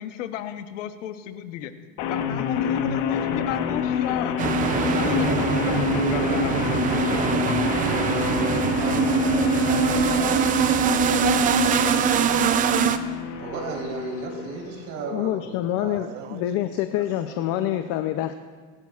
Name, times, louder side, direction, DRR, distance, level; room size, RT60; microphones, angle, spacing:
voice 1, 0.0-1.7 2.1-4.4 4.8-7.1, left 12 dB, 80° left, 9 dB, 1.0 m, -32 dB
sound 1, 2.0-15.0, left 8 dB, 65° left, 1.3 m, -27 dB
sound 2, 4.4-13.0, right 8 dB, 25° right, 0.4 m, -23 dB
voice 2, 8.5-12.2 15.8-16.8, right 9 dB, 80° right, 10 dB, 1.0 m, -42 dB
voice 3, 13.4-16.3 17.0-17.8, right 3 dB, 45° right, -1 dB, 3.7 m, -35 dB
voice 4, 15.1-18.4, left 13 dB, 45° left, 9 dB, 0.5 m, -26 dB
20.5 x 11.5 x 2.4 m, 1.5 s
supercardioid pair, 135°, 37 cm